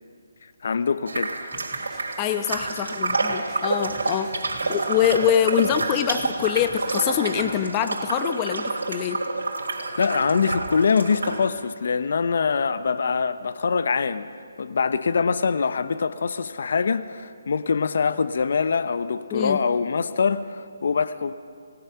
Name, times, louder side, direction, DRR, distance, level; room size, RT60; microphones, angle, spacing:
voice 1, 0.6-1.3 9.9-14.3 14.6-21.3, left 5 dB, 60° left, 0.8 m, -24 dB
sound 1, 1.1-11.5, right 3 dB, 85° right, 3.3 m, -28 dB
sound 2, 1.5-7.7, right 2 dB, 5° right, 3.6 m, -46 dB
voice 2, 2.2-4.3 4.7-9.2 19.3-19.6, left 10 dB, 20° left, 0.9 m, -24 dB
26.5 x 19.0 x 5.7 m
hypercardioid pair, 160°, 0 cm